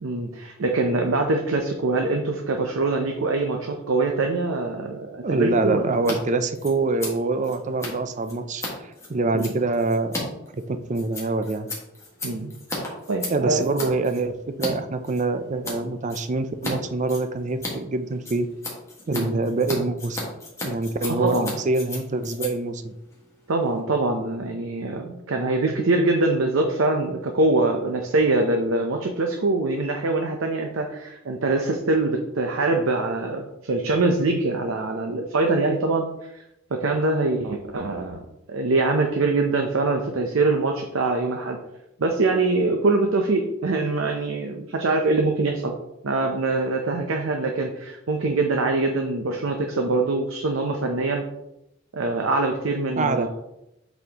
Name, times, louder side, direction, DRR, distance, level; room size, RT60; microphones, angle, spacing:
voice 1, 0.0-5.9 9.3-9.5 12.2-12.5 13.1-13.9 19.1-19.4 21.0-21.6 23.5-36.0 36.3-36.4 36.7-38.2 38.5-41.6 42.0-45.7 46.0-51.3 51.9-53.3, right 2 dB, 85° right, 3 dB, 0.7 m, -24 dB
voice 2, 5.2-10.2 10.7-11.7 13.3-18.5 19.1-20.3 20.6-22.9 53.0-53.3, right 3 dB, 35° right, 9 dB, 0.4 m, -25 dB
Scissors, 5.9-6.2 6.4-14.7 15.0-15.8 16.1-16.7 17.0-23.8, left 2 dB, 15° left, 1.6 m, -35 dB
7.9 x 4.2 x 2.9 m, 0.86 s
head